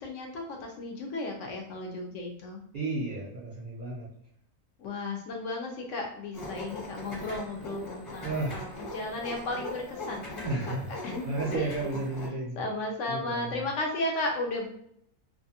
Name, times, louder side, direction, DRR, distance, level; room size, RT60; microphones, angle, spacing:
voice 1, 0.0-2.6 4.8-10.8 11.0-11.3 11.5-11.7 12.6-14.7, left 2 dB, 70° left, 1 dB, 0.9 m, -34 dB
voice 2, 2.7-4.1 8.2-8.7 10.4-12.7 13.1-13.7, right 2 dB, 55° right, -6 dB, 0.5 m, -33 dB
sound 1, 6.3-12.3, left 1 dB, 40° left, 1.1 m, -40 dB
2.6 x 2.4 x 2.7 m, 0.70 s
omnidirectional pair, 1.5 m